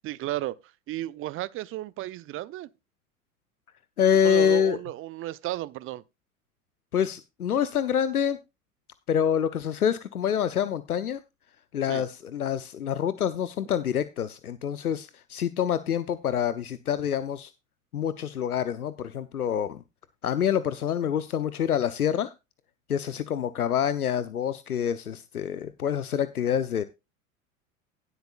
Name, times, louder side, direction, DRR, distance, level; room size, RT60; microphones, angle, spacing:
voice 1, 0.0-0.5 0.9-2.7 4.2-6.0 11.9-12.0, right 15 dB, 30° right, 0.7 m, -33 dB
voice 2, 4.0-4.8 6.9-8.4 9.1-11.2 11.7-17.5 17.9-19.8 20.2-22.3 22.9-26.8, left 8 dB, 80° left, 0.8 m, -26 dB
17.5 x 8.1 x 2.4 m
figure-of-eight pair, 85°, 43 cm